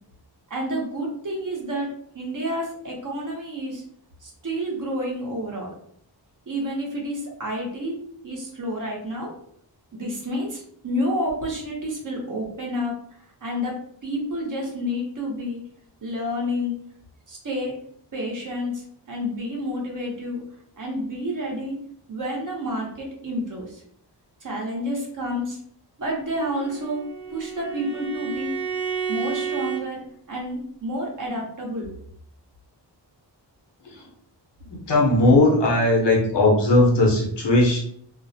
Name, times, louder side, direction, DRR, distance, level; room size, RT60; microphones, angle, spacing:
voice 1, 0.5-3.8 4.2-5.7 6.5-8.0 8.2-9.3 9.9-12.9 13.4-13.7 14.0-15.6 16.0-16.7 17.3-17.8 18.1-20.4 20.8-21.8 22.1-23.8 24.4-25.6 26.0-27.0 27.3-28.6 29.1-31.9, equal, 45° right, -2 dB, 0.8 m, -29 dB
Bowed string instrument, 26.3-29.9, right 7 dB, 15° left, 0.3 m, -31 dB
voice 2, 34.7-37.8, left 2 dB, 70° left, -1 dB, 0.8 m, -18 dB
2.4 x 2.0 x 2.6 m, 0.64 s
wide cardioid pair, 130°, 43 cm